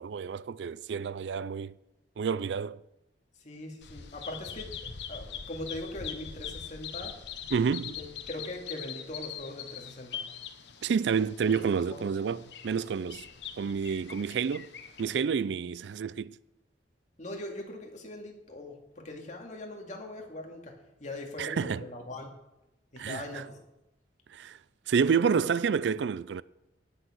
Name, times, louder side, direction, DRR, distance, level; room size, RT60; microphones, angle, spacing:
voice 1, 0.0-1.7 2.2-2.8 7.5-8.0 10.8-13.2 13.6-14.7 15.0-16.4 21.4-21.8 23.0-23.5 24.3-24.6 24.9-26.4, right 6 dB, 80° right, 0.4 m, -29 dB
voice 2, 3.4-4.7 5.1-7.2 7.9-10.2 11.9-12.0 17.2-20.7 21.0-22.3 22.9-23.6, left 1 dB, 45° left, 2.3 m, -41 dB
Bird vocalization bird call bird song, 3.8-15.2, left 8 dB, 75° left, 1.1 m, -43 dB
17.5 x 6.7 x 6.2 m
head